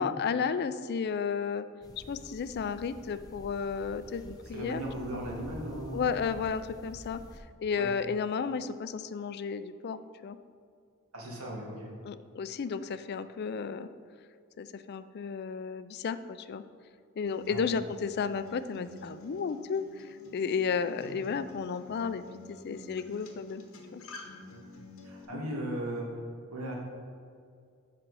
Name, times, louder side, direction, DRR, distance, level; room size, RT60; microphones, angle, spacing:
voice 1, 0.0-1.7 2.1-4.8 5.1-5.2 5.9-7.2 7.6-10.4 12.0-13.9 14.6-16.6 17.2-22.2 22.5-23.6 23.9-24.0 25.3-25.5, left 6 dB, 50° left, 12 dB, 0.4 m, -33 dB
sound 1, 1.8-7.4, equal, 15° left, 0.8 m, -49 dB
voice 2, 4.5-6.1 7.7-7.9 11.1-11.9 17.5-17.7 21.0-21.2 24.5-24.6 25.0-26.2 26.5-26.7, right 1 dB, 85° right, -2 dB, 1.8 m, -37 dB
Acoustic guitar, 17.3-25.2, left 1 dB, 65° left, 1.1 m, -49 dB
7.7 x 6.1 x 4.7 m, 2.3 s
head